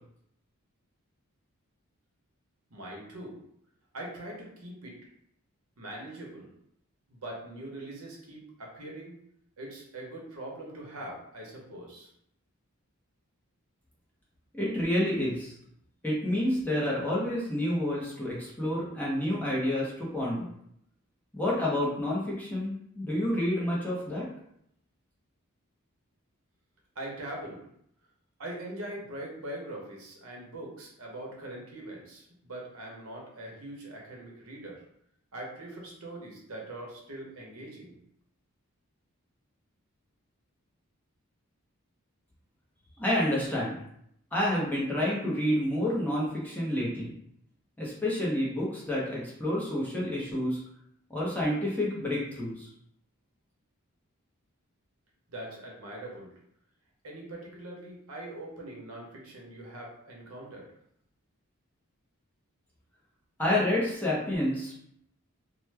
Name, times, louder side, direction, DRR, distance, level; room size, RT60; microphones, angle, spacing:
voice 1, 2.7-3.3 3.9-4.9 5.8-6.5 7.1-9.1 9.6-12.1 26.9-27.6 28.4-34.8 35.3-38.0 55.3-56.3 57.0-60.7, right 1 dB, 75° right, -2 dB, 0.9 m, -42 dB
voice 2, 14.5-15.5 16.0-20.5 21.3-24.3 43.0-43.8 44.3-47.1 47.8-50.6 51.1-52.7 63.4-64.7, left 1 dB, 10° left, -6 dB, 0.7 m, -29 dB
3.0 x 2.1 x 3.3 m, 0.72 s
head